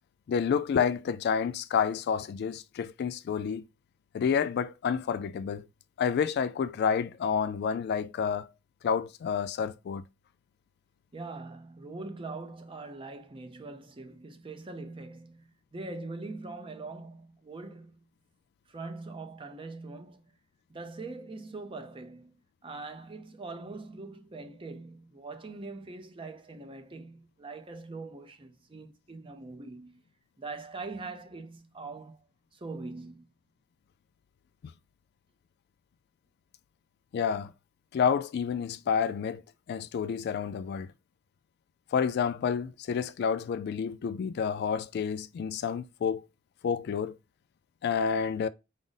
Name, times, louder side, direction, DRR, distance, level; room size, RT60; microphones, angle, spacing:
voice 1, 0.3-3.6 4.1-5.7 6.0-8.5 8.8-10.0 34.6-34.7 37.1-37.5 37.9-39.4 39.7-40.9 41.9-46.2 46.6-47.2 47.8-48.5, left 6 dB, 55° left, 0.3 m, -29 dB
voice 2, 11.1-18.1 18.7-20.3 20.7-30.0 30.4-32.2 32.5-33.3, right 3 dB, 25° right, 0.5 m, -42 dB
4.9 x 2.1 x 3.9 m
head